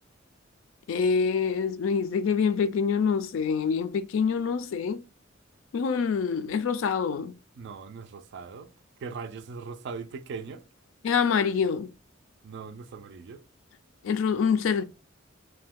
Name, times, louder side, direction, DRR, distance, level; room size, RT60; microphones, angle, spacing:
voice 1, 0.9-5.0 5.7-7.3 11.0-11.9 14.0-14.8, left 6 dB, 75° left, 0.3 m, -26 dB
voice 2, 7.6-8.7 9.0-10.6 12.4-13.4, right 5 dB, 60° right, 0.3 m, -39 dB
2.6 x 2.2 x 3.5 m
head